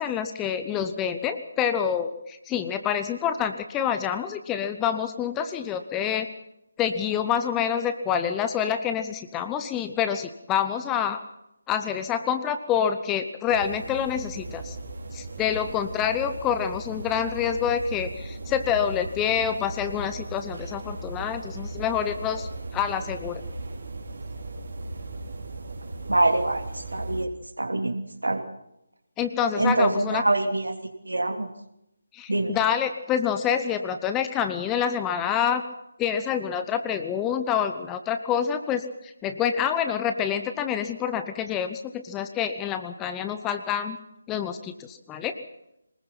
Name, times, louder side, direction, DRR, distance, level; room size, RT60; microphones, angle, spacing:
voice 1, 0.0-6.3 6.8-11.2 11.7-14.8 15.1-23.4 29.2-30.2 32.1-35.6 36.0-44.0 44.3-45.4, left 8 dB, 10° left, 9 dB, 0.9 m, -27 dB
sound 1, 13.5-27.3, right 2 dB, 50° right, 4.2 m, -37 dB
voice 2, 26.1-26.6 26.9-27.3 27.6-28.4 29.6-30.7 31.1-31.5 32.3-32.5, right 2 dB, 70° right, 6 dB, 3.0 m, -24 dB
23.5 x 20.5 x 5.8 m, 0.83 s
figure-of-eight pair, 155°, 0 cm